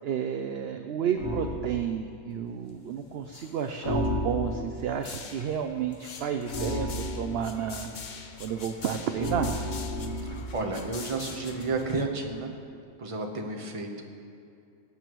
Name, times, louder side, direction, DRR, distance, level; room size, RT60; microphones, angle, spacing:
voice 1, 0.0-7.9 8.4-9.5, right 8 dB, 65° right, 6 dB, 0.7 m, -31 dB
sound 1, 1.2-1.6 3.8-4.8 6.5-7.6 9.2-10.5, left 1 dB, 75° left, 1.9 m, -31 dB
sound 2, 2.5-2.9 3.1-4.1 4.8-12.1, left 5 dB, 45° left, 0.7 m, -44 dB
voice 2, 10.2-12.5 13.0-14.0, right 3 dB, 25° right, 2 dB, 0.9 m, -32 dB
20.5 x 8.4 x 3.1 m, 2.5 s
omnidirectional pair, 1.4 m